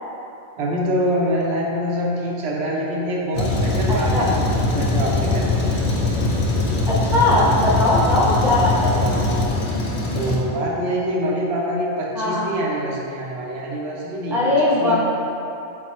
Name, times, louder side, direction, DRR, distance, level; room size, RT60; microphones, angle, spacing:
voice 1, 0.6-5.6 8.2-8.3 8.9-9.5 10.1-14.4 14.6-15.0, equal, 70° right, -3 dB, 0.9 m, -25 dB
Truck, 3.3-10.4, left 2 dB, 50° left, 0.6 m, -21 dB
voice 2, 3.9-4.3 6.9-8.9 12.1-12.5 14.3-15.0, left 2 dB, 5° right, -9 dB, 0.6 m, -19 dB
3.6 x 2.8 x 4.1 m, 2.9 s
omnidirectional pair, 1.2 m